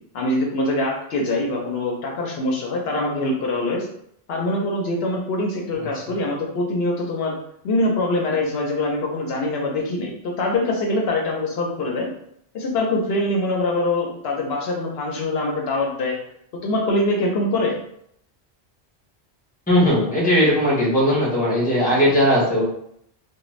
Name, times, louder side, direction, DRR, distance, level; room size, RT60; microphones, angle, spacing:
voice 1, 0.1-3.9 4.3-7.4 7.6-12.1 12.5-16.2 16.6-17.8, left 2 dB, 70° left, 0 dB, 0.8 m, -23 dB
voice 2, 19.7-22.6, equal, 10° left, -5 dB, 0.8 m, -18 dB
2.4 x 2.2 x 3.0 m, 0.71 s
omnidirectional pair, 1.1 m